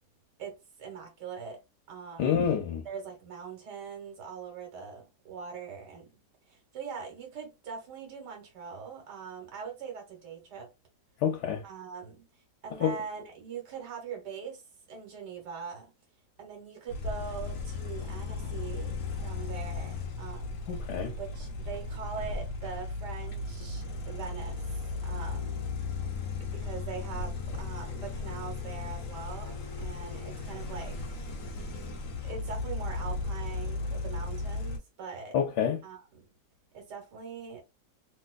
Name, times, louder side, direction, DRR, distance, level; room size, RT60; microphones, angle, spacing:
voice 1, 0.4-1.6 1.9-2.3 2.9-6.1 6.5-10.7 11.6-12.3 12.6-14.6 14.9-15.9 16.4-20.6 21.2-25.6 26.4-31.0 32.2-35.4 35.8-36.2 36.7-37.6, right 6 dB, 90° right, 1.9 m, -42 dB
voice 2, 2.2-2.8 11.2-11.6 12.8-12.9 20.7-21.1 35.3-35.8, left 8 dB, 90° left, 1.3 m, -27 dB
sound 1, 16.9-34.8, left 3 dB, 60° left, 1.1 m, -36 dB
3.3 x 2.9 x 2.3 m
omnidirectional pair, 1.7 m